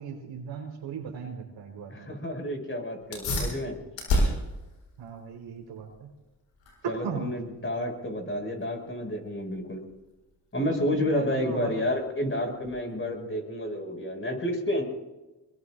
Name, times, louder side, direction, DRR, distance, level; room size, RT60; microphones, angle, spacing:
voice 1, 0.0-2.1 5.0-6.1 6.8-7.3 10.8-11.8, right 6 dB, 80° right, 2 dB, 4.4 m, -37 dB
voice 2, 1.9-3.8 6.9-9.8 10.5-14.8, left 1 dB, 25° left, 2 dB, 6.2 m, -30 dB
sound 1, 3.0-13.1, left 1 dB, 85° left, 7.4 m, -34 dB
23.5 x 22.0 x 2.6 m, 1.0 s
cardioid pair, 70°, 45 cm